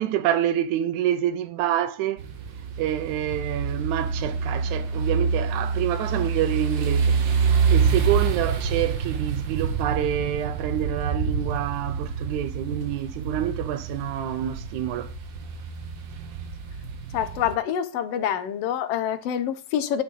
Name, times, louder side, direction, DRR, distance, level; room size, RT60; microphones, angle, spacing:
voice 1, 0.0-2.2 2.8-7.2 7.7-15.1, right 11 dB, 85° right, 2.2 m, -27 dB
sound 1, 2.2-17.5, right 5 dB, 60° right, 1.3 m, -27 dB
voice 2, 17.1-20.0, left 9 dB, 70° left, 1.7 m, -26 dB
10.0 x 7.1 x 4.0 m
omnidirectional pair, 3.3 m